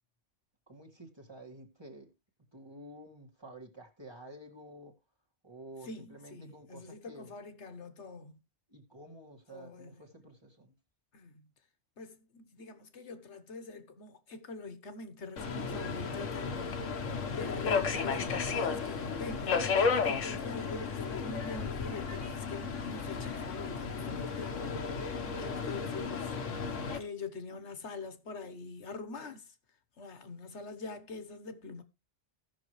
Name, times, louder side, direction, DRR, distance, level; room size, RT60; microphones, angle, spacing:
voice 1, 0.7-2.1 2.5-4.9 5.4-7.3 8.7-10.7 16.1-16.7 17.1-17.4 19.9-20.4 25.5-25.8, right 1 dB, 20° right, 2.0 m, -51 dB
voice 2, 5.8-8.4 9.5-10.0 11.1-11.5 12.0-16.7 17.3-19.6 20.1-26.3 26.9-29.5 30.0-31.8, left 3 dB, 65° left, 1.5 m, -44 dB
Subway metro underground, 15.4-27.0, left 5 dB, 85° left, 1.5 m, -33 dB
17.0 x 6.2 x 3.2 m
omnidirectional pair, 1.3 m